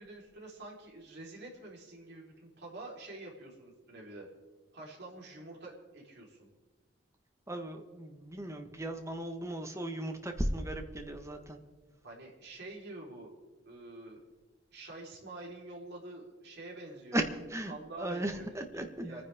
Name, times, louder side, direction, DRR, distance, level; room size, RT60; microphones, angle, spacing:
voice 1, 0.0-4.3 4.7-6.5 12.0-13.3 13.6-14.2 14.7-17.3 17.7-19.2, right 2 dB, 60° right, -3 dB, 4.2 m, -47 dB
voice 2, 7.5-11.6 17.1-19.2, right 1 dB, 15° right, 5 dB, 1.4 m, -36 dB
30.0 x 10.0 x 3.6 m, 1.3 s
head